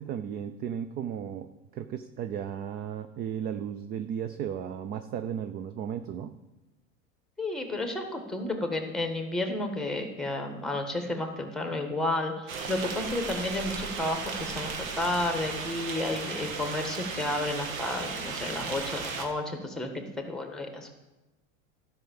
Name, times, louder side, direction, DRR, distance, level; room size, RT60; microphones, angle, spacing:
voice 1, 0.0-6.3, right 8 dB, 25° right, 10 dB, 0.3 m, -35 dB
voice 2, 7.4-20.9, left 2 dB, ahead, 5 dB, 1.5 m, -32 dB
sound 1, 12.5-19.3, right 5 dB, 85° right, 1.7 m, -35 dB
12.0 x 5.8 x 7.1 m, 1.0 s
supercardioid pair, 120°, 40 cm